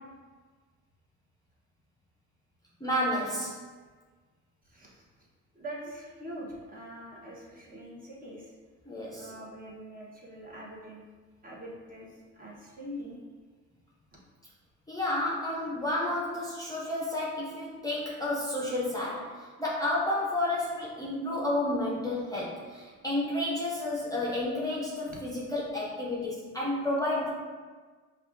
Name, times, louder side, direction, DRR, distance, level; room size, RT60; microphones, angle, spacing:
voice 1, 2.8-3.6 8.9-9.3 14.9-19.3 19.6-27.3, left 1 dB, 10° left, -5 dB, 0.6 m, -31 dB
voice 2, 4.6-5.0 5.5-8.5 9.2-11.0 11.4-13.2 25.1-25.2, equal, 30° right, -4 dB, 1.0 m, -43 dB
5.3 x 2.3 x 2.5 m, 1.5 s
cardioid pair, 90°, 30 cm